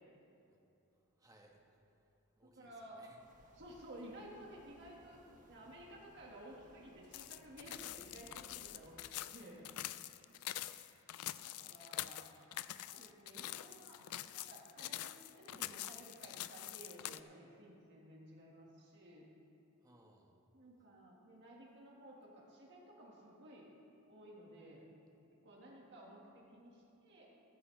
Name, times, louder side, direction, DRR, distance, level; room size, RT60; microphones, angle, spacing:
voice 1, 1.2-1.6 2.3-3.6 12.5-13.0 19.8-20.3, right 1 dB, 15° right, 0 dB, 1.3 m, -66 dB
voice 2, 2.4-3.0 3.5-5.2 5.5-9.7 11.4-12.3 12.9-14.0 14.3-19.2 20.5-23.7 24.1-24.9 25.4-27.2, right 1 dB, 55° right, -3 dB, 1.8 m, -55 dB
sound 1, 3.2-9.1, right 1 dB, 40° right, 1.3 m, -65 dB
sound 2, 7.1-17.2, left 14 dB, 80° left, 0.4 m, -45 dB
14.0 x 14.0 x 3.3 m, 2.8 s
head